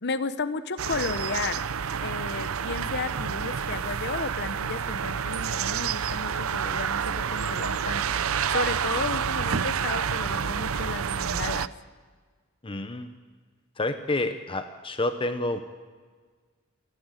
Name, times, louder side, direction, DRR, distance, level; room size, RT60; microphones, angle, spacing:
voice 1, 0.0-1.6 2.0-11.7, left 4 dB, 55° left, 12 dB, 1.1 m, -33 dB
sound 1, 0.8-11.7, right 7 dB, 75° right, 0.6 m, -29 dB
voice 2, 12.6-13.1 13.8-15.6, left 2 dB, 25° left, 8 dB, 0.9 m, -29 dB
28.5 x 12.0 x 9.1 m, 1.5 s
head